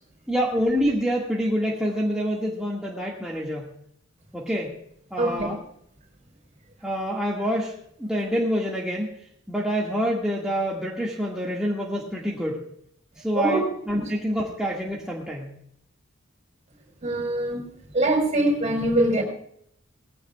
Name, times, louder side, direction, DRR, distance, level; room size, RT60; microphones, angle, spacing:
voice 1, 0.3-3.7 4.3-4.7 5.1-5.6 6.8-9.2 9.5-12.6 13.2-15.5, equal, 5° right, -5 dB, 1.9 m, -27 dB
voice 2, 5.2-5.5 13.3-13.6 13.9-14.0 17.0-17.7 17.9-19.2, right 1 dB, 35° right, 2 dB, 4.6 m, -23 dB
20.0 x 16.0 x 2.4 m, 0.68 s
head